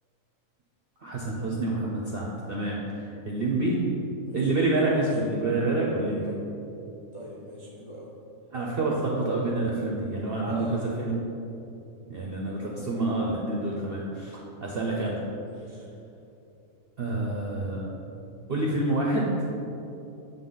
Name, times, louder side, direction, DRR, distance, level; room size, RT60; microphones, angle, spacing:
voice 1, 1.0-3.8 4.3-6.2 8.5-10.7 11.0-11.1 12.1-15.2 17.0-17.8 18.5-19.3, right 2 dB, 60° right, -3 dB, 0.6 m, -28 dB
voice 2, 6.1-6.4 7.1-8.1 10.5-10.9 15.4-15.9, right 1 dB, 45° left, -4 dB, 0.4 m, -42 dB
6.9 x 3.9 x 3.8 m, 2.8 s
omnidirectional pair, 1.7 m